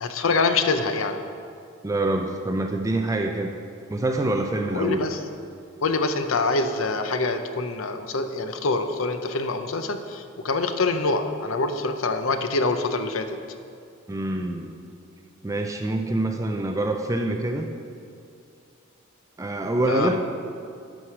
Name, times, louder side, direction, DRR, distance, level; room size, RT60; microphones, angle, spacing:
voice 1, 0.0-1.2 4.7-5.2 5.8-13.4 19.9-20.2, left 3 dB, 75° left, 7 dB, 0.6 m, -25 dB
voice 2, 1.8-3.5 3.9-5.0 14.1-14.7 15.4-17.7 19.4-20.2, right 1 dB, 15° right, 4 dB, 0.4 m, -25 dB
11.5 x 4.8 x 5.9 m, 2.4 s
head